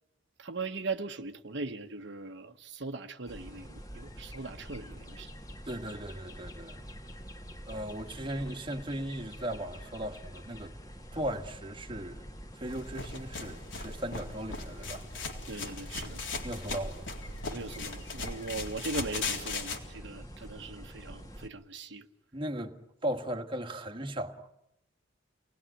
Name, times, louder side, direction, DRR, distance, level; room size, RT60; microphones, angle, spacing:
voice 1, 0.4-5.3 15.5-16.2 17.4-22.1, right 3 dB, 65° right, 1.1 m, -39 dB
sound 1, 3.3-21.5, equal, 20° left, 2.1 m, -46 dB
voice 2, 5.7-6.8 7.7-10.7 11.1-12.3 12.6-15.0 16.4-17.1 22.3-22.8 23.0-24.5, right 1 dB, 25° right, 1.5 m, -37 dB
sound 2, 12.7-19.8, left 4 dB, 80° left, 3.7 m, -38 dB
28.5 x 19.5 x 9.9 m
head